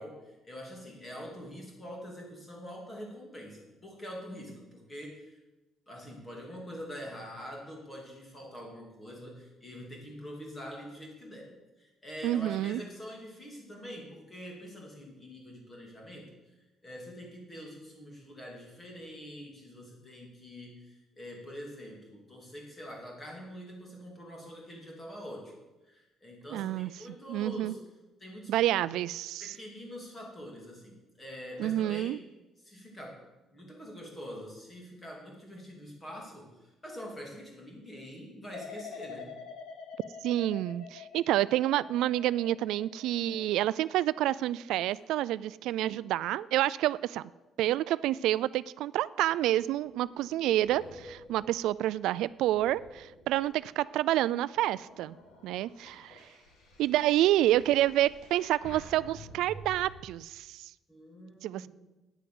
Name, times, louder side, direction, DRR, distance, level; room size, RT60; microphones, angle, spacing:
voice 1, 0.0-5.4 5.9-16.3 16.8-25.5 25.8-27.8 28.2-28.5 29.4-32.2 32.6-33.2 33.5-39.4 60.9-61.7, equal, 15° left, -1 dB, 2.8 m, -45 dB
voice 2, 12.2-12.8 26.5-26.9 27.3-27.8 28.5-29.5 31.6-32.2 40.2-47.2 47.6-55.1 55.4-56.2 56.8-60.7 61.4-61.6, right 14 dB, 90° right, 18 dB, 0.3 m, -28 dB
Distant Space Sweep, 38.5-45.5 45.9-46.3, left 6 dB, 65° left, 1.5 m, -47 dB
sound 1, 49.5-53.8 54.3-59.9, left 1 dB, 85° left, 2.6 m, -51 dB
9.3 x 9.0 x 7.7 m, 1.1 s
cardioid pair, 175°, 0 cm